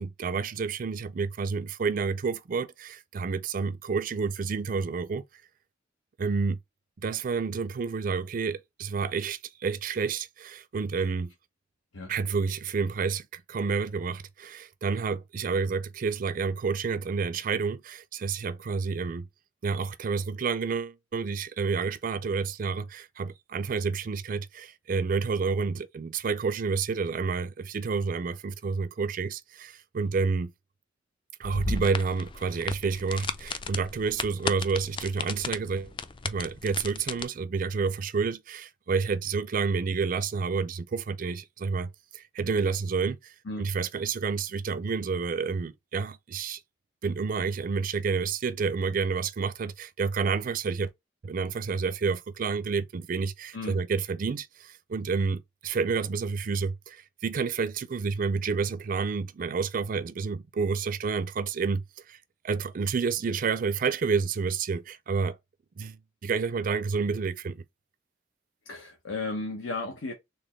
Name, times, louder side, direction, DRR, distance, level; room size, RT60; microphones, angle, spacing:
voice 1, 0.0-5.2 6.2-6.6 7.0-11.3 12.1-19.3 19.6-30.5 31.4-35.9 36.2-46.6 47.0-50.9 51.2-62.2 62.4-65.4 65.8-66.0 66.2-67.6, right 5 dB, 45° right, 0.4 m, -29 dB
sound 1, 31.4-37.2, left 4 dB, 25° left, 0.4 m, -35 dB
voice 2, 68.6-70.1, left 3 dB, 90° left, 1.0 m, -34 dB
4.1 x 3.4 x 3.1 m
head